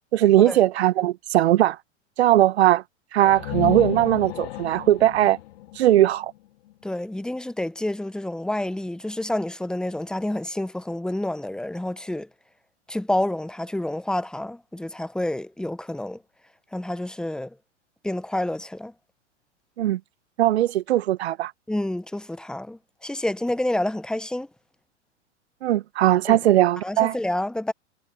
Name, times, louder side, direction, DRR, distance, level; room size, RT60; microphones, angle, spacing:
voice 1, 0.1-1.8 2.2-2.8 3.1-5.4 5.7-6.3 19.8-20.0 20.4-21.5 25.6-27.2, right 13 dB, 60° right, 1.5 m, -19 dB
sound 1, 3.2-6.9, left 14 dB, 60° left, 2.7 m, -33 dB
voice 2, 6.8-12.3 12.9-16.2 16.7-17.6 18.0-18.9 21.7-24.5 26.3-26.4 26.8-27.7, left 1 dB, ahead, 1.1 m, -28 dB
figure-of-eight pair, 100°, 36 cm